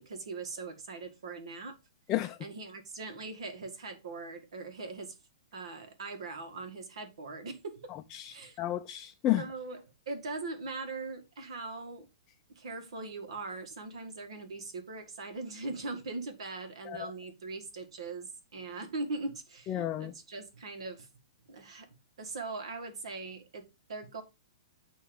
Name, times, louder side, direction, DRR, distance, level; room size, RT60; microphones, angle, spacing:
voice 1, 0.0-1.8 2.4-5.2 5.5-7.9 8.3-8.6 9.4-12.1 12.6-21.1 21.5-21.9 22.2-24.2, right 3 dB, 75° right, 1.8 m, -41 dB
voice 2, 2.1-2.5 8.1-9.4 16.9-17.1 19.7-20.1, left 14 dB, 20° left, 0.4 m, -32 dB
8.5 x 3.1 x 5.1 m
hypercardioid pair, 155°, 3 cm